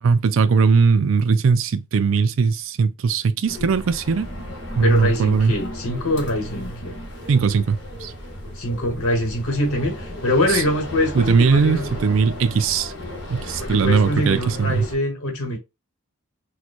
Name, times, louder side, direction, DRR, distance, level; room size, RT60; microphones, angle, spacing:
voice 1, 0.0-4.3 4.8-5.6 7.3-8.1 10.5-10.6 11.1-12.9 13.3-14.8, right 5 dB, 65° right, 0.4 m, -19 dB
sound 1, 3.5-15.0, equal, 55° left, 1.0 m, -34 dB
voice 2, 4.8-6.9 8.5-11.9 13.6-15.6, left 1 dB, 75° left, 1.3 m, -24 dB
2.9 x 2.2 x 4.2 m
head